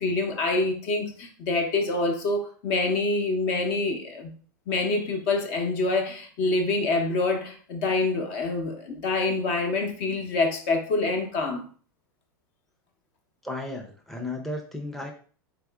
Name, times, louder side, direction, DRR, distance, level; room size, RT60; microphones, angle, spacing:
voice 1, 0.0-4.3 4.7-11.6, left 2 dB, 50° left, 4 dB, 0.9 m, -26 dB
voice 2, 13.4-15.1, left 2 dB, ahead, 1 dB, 0.6 m, -34 dB
4.1 x 3.4 x 2.3 m, 0.42 s
hypercardioid pair, 95°, 11 cm